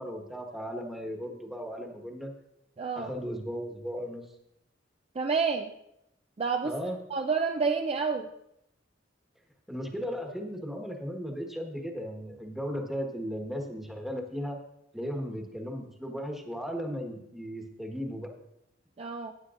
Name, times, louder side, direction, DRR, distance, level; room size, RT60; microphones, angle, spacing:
voice 1, 0.0-2.3 2.9-4.2 6.6-7.0 9.7-14.6 14.9-18.3, equal, ahead, 2 dB, 1.3 m, -36 dB
voice 2, 2.8-3.1 5.2-5.7 6.4-6.7 7.1-8.3 19.0-19.3, right 5 dB, 30° right, 5 dB, 0.4 m, -29 dB
15.0 x 9.8 x 2.5 m, 0.81 s
head